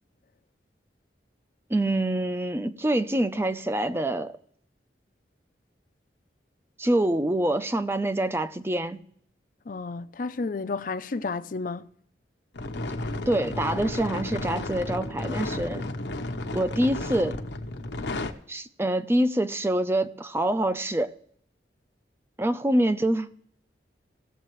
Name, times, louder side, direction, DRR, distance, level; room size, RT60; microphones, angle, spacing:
voice 1, 1.7-4.4 6.8-9.0 13.3-15.9 16.5-17.4 18.5-21.1 22.4-23.3, right 1 dB, 15° right, 0.5 m, -25 dB
voice 2, 9.7-11.9, left 3 dB, 50° left, 0.5 m, -31 dB
sound 1, 12.5-18.3, left 2 dB, 75° left, 0.9 m, -33 dB
17.5 x 7.6 x 3.1 m
head